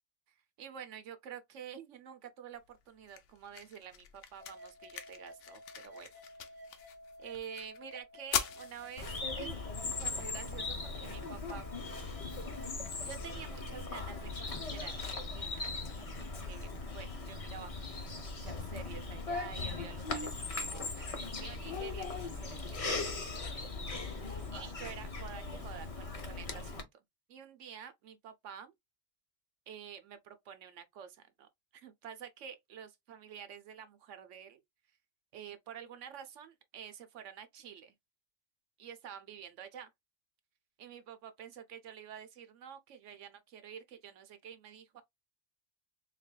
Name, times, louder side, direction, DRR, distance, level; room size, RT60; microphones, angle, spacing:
voice 1, 0.6-6.1 7.2-9.1 9.4-9.6 10.0-11.7 13.0-15.6 15.9-23.1 24.5-26.8 27.3-28.7 29.7-34.6 35.3-37.9 38.8-39.9 40.8-45.0, right 8 dB, 75° right, 1.0 m, -49 dB
sound 1, 2.5-14.5, left 8 dB, 75° left, 1.0 m, -45 dB
sound 2, 4.4-14.4, equal, 50° right, 0.9 m, -53 dB
Bird vocalization bird call bird song, 9.0-26.8, left 3 dB, 35° left, 0.6 m, -39 dB
3.8 x 3.3 x 2.2 m
omnidirectional pair, 1.3 m